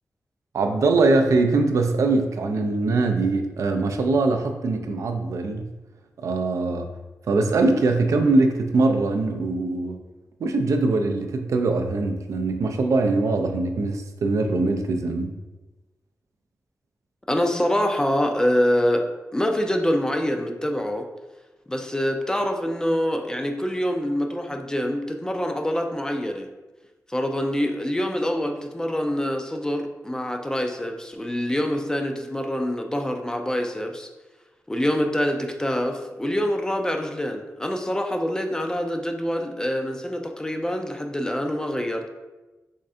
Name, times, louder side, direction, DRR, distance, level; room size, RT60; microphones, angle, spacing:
voice 1, 0.5-5.7 6.2-6.9 7.3-10.0 10.4-15.4, right 3 dB, 80° right, 5 dB, 0.3 m, -22 dB
voice 2, 17.3-19.1 19.3-21.1 21.7-26.5 27.1-34.1 34.7-42.1, equal, 15° left, 4 dB, 0.3 m, -25 dB
3.5 x 3.2 x 2.6 m, 1.1 s
wide cardioid pair, 105°, 5 cm